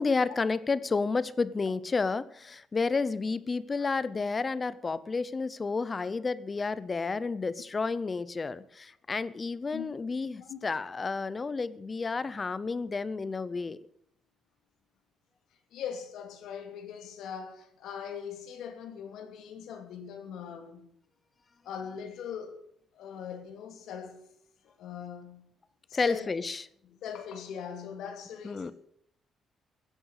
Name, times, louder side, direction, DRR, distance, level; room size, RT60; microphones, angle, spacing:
voice 1, 0.0-13.8 25.9-26.6 28.4-28.7, left 4 dB, 25° left, 0.7 m, -31 dB
voice 2, 15.7-20.9 21.6-22.6 22.9-24.2 24.8-25.5 25.9-26.3 26.8-28.7, left 7 dB, 80° left, 2.6 m, -41 dB
15.5 x 9.9 x 8.3 m
cardioid pair, 130°, 0 cm